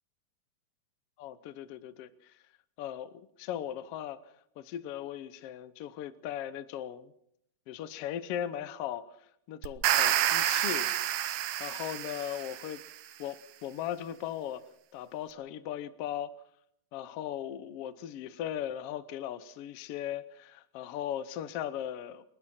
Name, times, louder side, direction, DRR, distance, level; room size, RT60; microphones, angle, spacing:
voice 1, 1.2-2.3 2.8-4.2 4.6-7.1 7.7-9.2 9.5-10.9 11.6-12.8 13.2-14.6 14.9-16.3 16.9-22.2, left 10 dB, 75° left, 1.4 m, -38 dB
sound 1, 9.6-12.8, right 12 dB, 80° right, 2.6 m, -29 dB
29.5 x 21.5 x 4.3 m
omnidirectional pair, 3.8 m